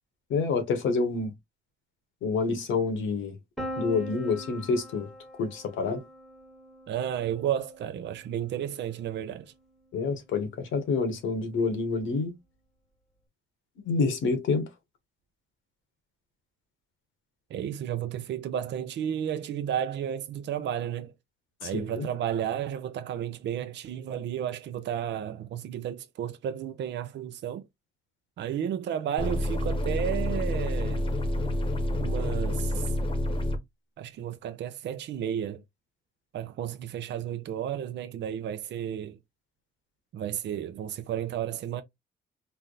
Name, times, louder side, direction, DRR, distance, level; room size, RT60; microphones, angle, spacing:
voice 1, 0.3-1.3 2.2-3.4 3.8-5.1 5.4-6.0 9.9-12.3 13.8-14.7 21.6-22.1, left 4 dB, 80° left, 1.1 m, -28 dB
Piano, 3.6-9.3, equal, ahead, 1.0 m, -42 dB
voice 2, 6.9-9.5 17.5-21.1 21.6-27.6 28.4-31.1 32.0-32.9 34.0-35.6 36.3-39.2 40.1-41.8, right 10 dB, 65° right, 0.5 m, -32 dB
sound 1, 29.2-33.6, left 1 dB, 25° left, 0.9 m, -28 dB
3.3 x 2.0 x 3.9 m
cardioid pair, 90°, 20 cm